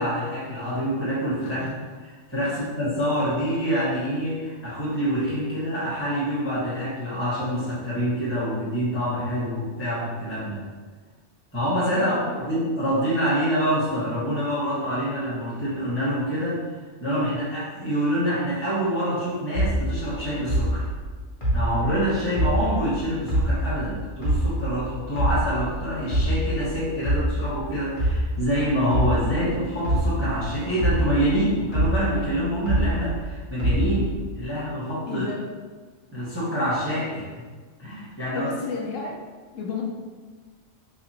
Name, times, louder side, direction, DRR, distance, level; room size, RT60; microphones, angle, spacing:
voice 1, 0.0-1.7 2.3-10.6 11.5-12.1 12.4-16.6 17.0-20.9 21.5-35.2 36.1-37.4 37.8-38.5, equal, 10° left, -11 dB, 1.3 m, -26 dB
voice 2, 1.4-1.7 2.4-2.6 11.9-12.4 35.1-35.5 38.3-39.2 39.5-39.8, left 4 dB, 80° left, -1 dB, 1.0 m, -32 dB
sound 1, 19.5-22.9 23.3-25.7 26.1-30.4 30.8-33.2 33.6-34.3, right 1 dB, 30° left, 1.0 m, -25 dB
4.2 x 2.5 x 2.9 m, 1.4 s
omnidirectional pair, 1.3 m